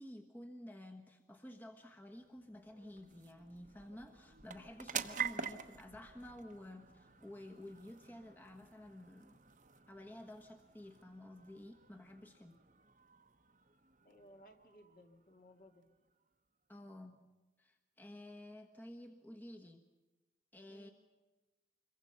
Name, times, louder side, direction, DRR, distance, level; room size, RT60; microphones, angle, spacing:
voice 1, 0.0-9.4 9.9-12.6 16.7-17.2 17.6-19.9 20.5-20.9, left 1 dB, 10° left, 3 dB, 1.3 m, -52 dB
sound 1, 1.5-16.3, right 7 dB, 45° right, 1.1 m, -49 dB
voice 2, 14.0-15.8 20.7-20.9, equal, 50° left, 4 dB, 2.4 m, -60 dB
26.5 x 22.5 x 5.8 m, 1.2 s
head